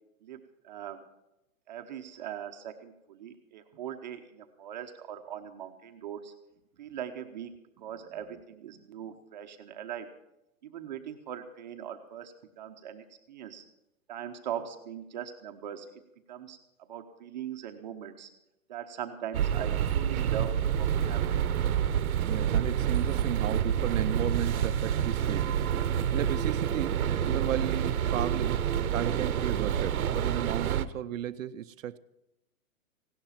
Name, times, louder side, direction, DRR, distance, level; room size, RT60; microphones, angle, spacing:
voice 1, 0.6-1.0 1.7-6.3 6.8-7.5 7.8-10.1 10.6-13.6 14.1-15.9 16.3-16.6 16.9-18.3 18.7-21.4, right 9 dB, 30° right, 0.8 m, -40 dB
sound 1, 19.3-30.9, right 9 dB, 90° right, 1.0 m, -28 dB
voice 2, 22.2-25.6 26.1-32.0, right 11 dB, 65° right, 0.6 m, -34 dB
16.5 x 12.0 x 5.7 m
hypercardioid pair, 170°, 42 cm